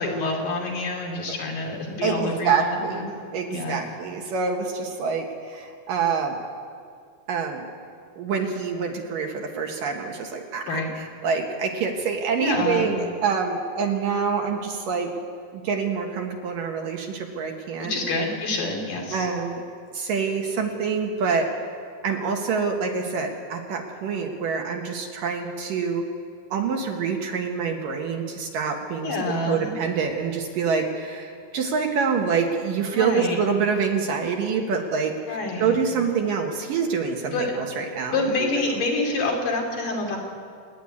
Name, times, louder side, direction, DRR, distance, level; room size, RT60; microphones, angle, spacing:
voice 1, 0.0-3.1 3.5-3.8 10.7-10.9 12.4-12.9 17.8-19.3 29.0-29.7 32.9-33.4 35.3-35.8 37.3-37.6 38.1-40.2, left 2 dB, 60° left, 0 dB, 4.2 m, -27 dB
voice 2, 2.0-3.1 3.3-6.4 7.3-7.7 8.2-15.1 15.6-18.0 19.1-19.6 19.9-21.5 22.0-26.0 26.5-29.2 29.5-38.5, right 5 dB, 65° right, 2 dB, 2.7 m, -26 dB
26.0 x 10.5 x 9.8 m, 2.2 s
omnidirectional pair, 4.6 m